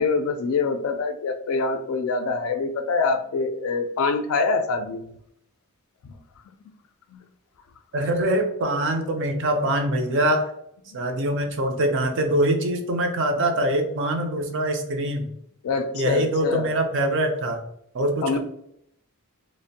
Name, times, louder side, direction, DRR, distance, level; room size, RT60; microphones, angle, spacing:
voice 1, 0.0-5.1 7.1-7.2 15.6-16.7 18.2-18.4, left 4 dB, 70° left, 9 dB, 0.3 m, -25 dB
voice 2, 7.9-10.5 10.9-15.3 15.9-17.6 17.9-18.4, right 1 dB, 55° right, 5 dB, 0.4 m, -24 dB
2.5 x 2.0 x 2.6 m, 0.73 s
head